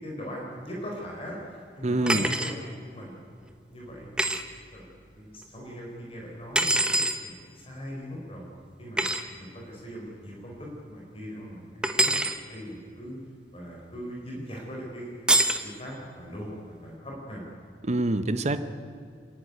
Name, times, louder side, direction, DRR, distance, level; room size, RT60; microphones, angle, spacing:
voice 1, 0.0-3.2 3.7-4.4 4.7-4.8 5.1-8.5 8.8-9.1 9.4-13.2 13.5-15.1 15.6-17.4, equal, 35° left, -2 dB, 4.3 m, -40 dB
voice 2, 1.8-2.3 17.8-18.6, right 2 dB, 40° right, 11 dB, 0.9 m, -25 dB
sound 1, 2.1-2.5 4.2-4.4 6.5-7.2 9.0-9.2 11.8-12.4 15.3-15.6, right 1 dB, 5° right, 1.0 m, -24 dB
28.0 x 11.0 x 9.5 m, 2.2 s
head